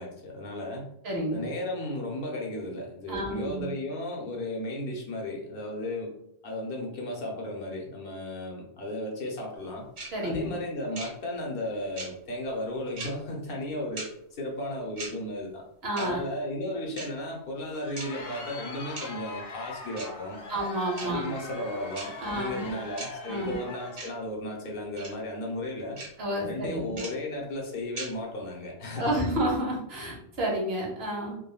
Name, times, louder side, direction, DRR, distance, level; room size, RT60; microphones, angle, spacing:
voice 1, 0.0-0.9 1.3-9.9 10.2-15.6 16.0-20.5 21.0-26.0 26.5-29.2, left 1 dB, 60° left, -1 dB, 0.8 m, -35 dB
voice 2, 1.0-1.4 3.1-3.7 10.1-10.5 15.8-16.2 20.5-21.2 22.2-22.7 23.3-23.6 26.2-27.0 28.9-31.4, right 1 dB, 70° right, -3 dB, 1.2 m, -30 dB
sound 1, 10.0-10.1 10.9-11.1 12.0-12.1 13.0-13.1 14.0-14.1 15.0-15.1 16.0-16.1 17.0-17.1 18.0-18.1 19.0-19.1 20.0-20.1 21.0-21.1 21.9-22.1 23.0-23.1 24.0-24.1 25.0-25.1 26.0-26.1 27.0-27.1 28.0-28.1, right 3 dB, 85° right, 1.6 m, -37 dB
Crowd, 17.5-24.1, left 2 dB, 90° left, 0.9 m, -41 dB
3.6 x 2.1 x 2.2 m, 0.76 s
omnidirectional pair, 1.1 m